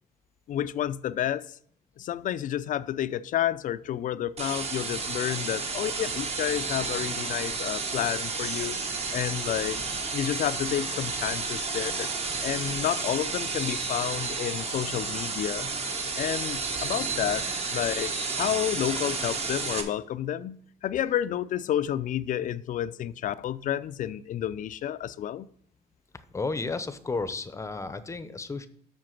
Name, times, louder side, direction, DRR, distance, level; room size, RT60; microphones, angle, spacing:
voice 1, 0.5-1.5 2.0-8.8 9.1-9.8 10.1-12.1 12.4-15.7 16.1-17.4 17.7-25.5, left 11 dB, 50° left, 0.4 m, -30 dB
sound 1, 4.4-19.8, right 4 dB, 35° right, 1.4 m, -31 dB
voice 2, 26.3-28.7, left 3 dB, 15° left, 0.7 m, -32 dB
7.7 x 5.8 x 5.8 m
cardioid pair, 110°, 17 cm